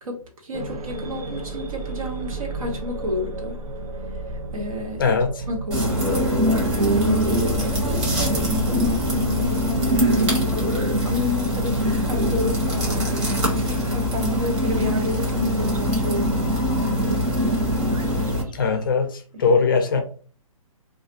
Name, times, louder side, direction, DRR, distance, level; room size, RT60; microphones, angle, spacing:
voice 1, 0.0-3.6 4.0-5.2 5.5-10.6 11.0-17.2 19.3-19.5, left 2 dB, 70° right, 0.9 m, -31 dB
sound 1, 0.5-18.9, right 2 dB, 90° right, 0.5 m, -34 dB
voice 2, 5.0-5.3 18.5-20.0, left 5 dB, 35° left, 0.4 m, -20 dB
sound 2, 5.7-18.4, equal, 50° right, 1.2 m, -22 dB
2.4 x 2.0 x 2.6 m
hypercardioid pair, 165°, 18 cm